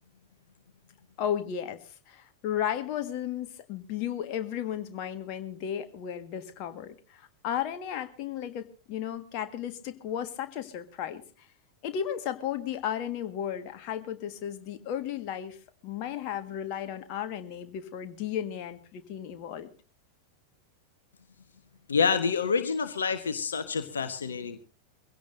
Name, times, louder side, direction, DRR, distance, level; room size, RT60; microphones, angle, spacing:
voice 1, 1.2-1.8 2.1-11.2 11.8-15.6 15.8-19.7, left 9 dB, 40° left, 8 dB, 1.7 m, -34 dB
voice 2, 21.9-24.6, left 5 dB, 70° left, 9 dB, 1.2 m, -27 dB
23.0 x 16.5 x 2.7 m, 0.36 s
figure-of-eight pair, 90°, 0 cm